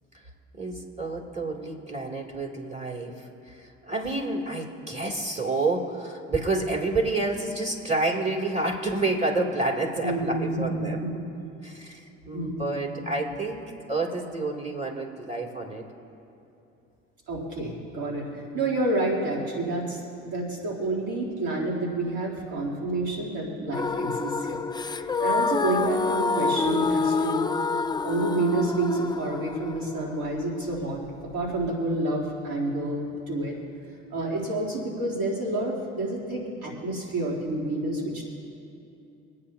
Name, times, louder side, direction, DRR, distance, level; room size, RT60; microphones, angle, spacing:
voice 1, 0.5-11.0 11.6-15.8, right 2 dB, 20° right, 0 dB, 3.0 m, -29 dB
voice 2, 10.0-11.2 12.3-12.7 17.3-24.6 24.9-27.5 28.0-31.0 31.3-33.6 34.1-38.3, right 2 dB, 85° right, -4 dB, 3.4 m, -29 dB
sound 1, 23.7-31.7, left 4 dB, 15° left, 0.4 m, -28 dB
26.0 x 9.4 x 2.9 m, 2.8 s
supercardioid pair, 60°, 31 cm